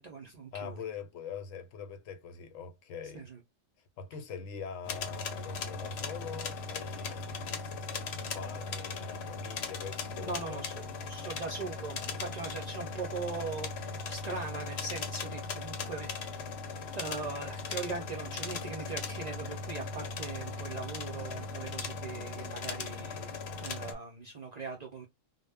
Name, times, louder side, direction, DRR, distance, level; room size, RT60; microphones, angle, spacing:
voice 1, 0.0-0.8 3.1-3.4 10.2-16.5 17.0-25.0, right 4 dB, 70° right, 0.4 m, -40 dB
voice 2, 0.5-3.3 4.0-7.7 8.2-10.6, left 6 dB, 85° left, 1.0 m, -43 dB
sound 1, 4.8-23.9, left 4 dB, 65° left, 0.8 m, -38 dB
2.1 x 2.0 x 3.3 m
omnidirectional pair, 1.3 m